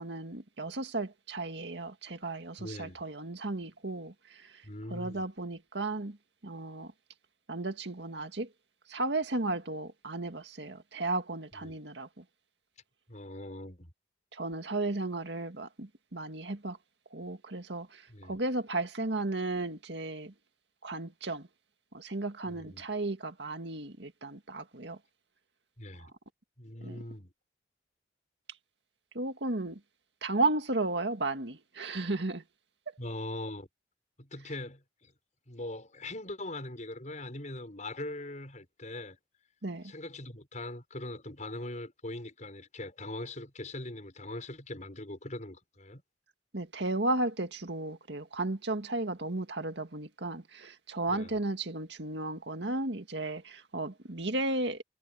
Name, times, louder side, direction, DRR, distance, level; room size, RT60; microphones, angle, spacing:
voice 1, 0.0-4.6 4.9-6.2 6.4-6.9 7.5-8.5 8.9-12.2 14.3-16.8 17.1-20.3 20.8-21.5 21.9-25.0 26.8-27.0 29.1-29.8 30.2-32.4 39.6-39.9 46.5-54.8, right 2 dB, 70° right, 2.1 m, -34 dB
voice 2, 2.6-3.0 4.6-5.2 11.5-11.8 13.1-13.9 18.1-18.3 22.5-22.8 25.8-26.1 26.6-27.3 33.0-33.7 34.2-35.1 35.5-39.2 39.8-46.0 51.1-51.3, left 1 dB, 40° left, 6.8 m, -41 dB
head